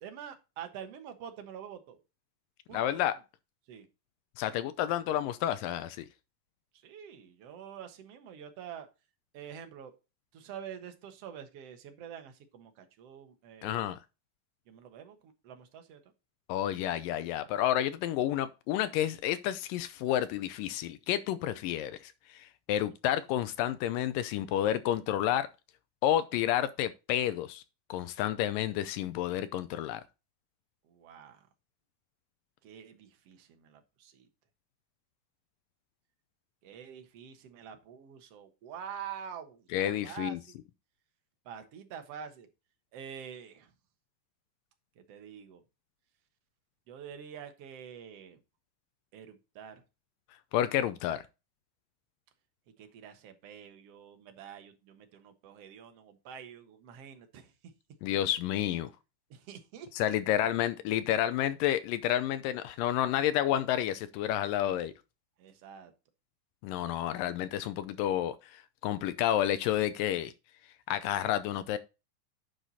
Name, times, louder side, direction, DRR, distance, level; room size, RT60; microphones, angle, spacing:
voice 1, 0.0-2.0 2.7-3.0 3.7-3.9 6.8-8.9 9.3-9.9 10.3-13.9 14.7-16.0 30.9-31.4 32.6-34.3 36.6-40.4 41.5-42.5 42.9-43.7 45.1-45.6 46.9-48.4 49.1-49.8 52.8-57.5 59.3-60.2 65.4-65.9, right 8 dB, 55° right, 2.0 m, -46 dB
voice 2, 2.7-3.2 4.4-6.1 13.6-14.0 16.5-25.5 26.0-27.6 27.9-30.0 39.7-40.4 50.5-51.3 58.0-58.9 59.9-64.9 66.6-70.3 70.9-71.8, left 12 dB, 80° left, 2.3 m, -30 dB
10.0 x 4.9 x 4.1 m
omnidirectional pair, 3.9 m